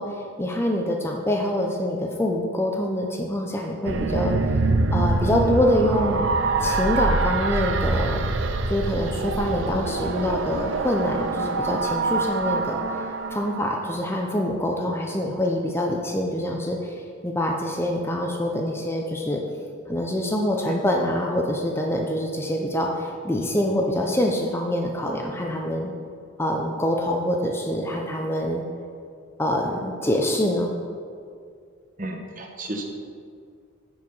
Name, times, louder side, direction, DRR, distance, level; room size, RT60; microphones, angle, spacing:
voice 1, 0.0-4.3 4.9-6.3 6.6-8.2 8.7-12.8 13.3-19.4 19.9-25.9 26.4-28.6 29.4-30.7, left 1 dB, 10° left, 1 dB, 0.5 m, -25 dB
sound 1, 3.8-14.2, right 3 dB, 65° right, 0.5 m, -25 dB
voice 2, 32.0-32.8, right 1 dB, 40° right, 2 dB, 1.0 m, -33 dB
9.8 x 4.8 x 5.4 m, 2.3 s
head